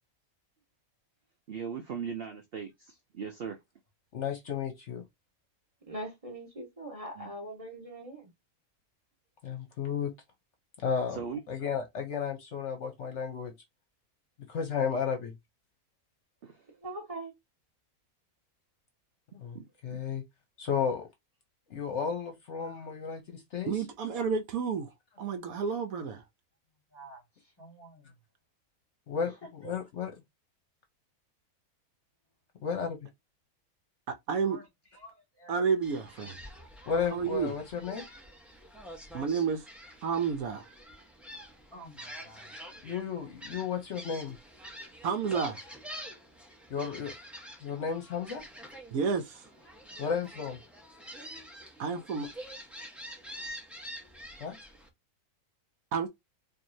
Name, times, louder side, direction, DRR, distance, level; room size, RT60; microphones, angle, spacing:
voice 1, 1.5-3.6 7.2-7.3 11.1-11.4 16.4-16.7 19.5-19.6 19.9-20.0, right 6 dB, 55° right, 0.7 m, -39 dB
voice 2, 4.1-5.0 9.4-10.1 10.8-11.2 11.5-13.5 14.5-15.3 19.3-19.6 19.8-20.2 20.6-21.1 21.7-23.7 29.1-29.3 29.6-30.1 32.6-33.0 36.9-38.1 42.8-44.4 46.7-47.1 47.6-48.4 50.0-50.6 54.4-54.6, left 6 dB, 55° left, 1.0 m, -33 dB
voice 3, 5.9-8.3 16.8-17.3, right 1 dB, 25° right, 1.5 m, -41 dB
voice 4, 23.7-24.9 25.2-26.2 34.1-34.6 35.5-36.4 37.1-37.5 39.1-39.7 40.0-40.7 45.0-45.6 48.9-49.5 51.8-52.3 55.9-56.1, right 6 dB, 75° right, 1.1 m, -30 dB
voice 5, 26.9-28.1 29.2-29.8 34.4-34.7 34.9-35.6 36.2-36.5 39.1-39.2 41.3-42.6 43.4-43.6 45.9-46.1 49.7-50.3, right 1 dB, 15° left, 2.2 m, -53 dB
Gull seagull, 35.8-54.9, equal, ahead, 0.8 m, -47 dB
4.6 x 2.8 x 2.7 m
omnidirectional pair, 1.6 m